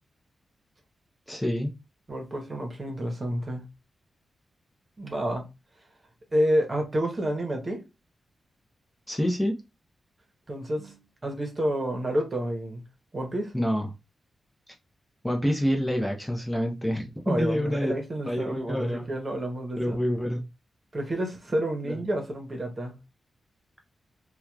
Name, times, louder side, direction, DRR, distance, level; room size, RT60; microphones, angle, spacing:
voice 1, 1.3-1.7 9.1-9.6 13.5-13.9 15.2-17.9 18.3-19.0 19.8-20.4 21.8-22.0, equal, 10° left, 0.7 m, -27 dB
voice 2, 2.1-3.6 5.0-5.5 6.3-7.8 10.5-12.8 13.1-13.5 17.3-20.0 20.9-23.0, equal, 40° right, 0.9 m, -29 dB
2.8 x 2.3 x 2.3 m
cardioid pair, 55°, 0 cm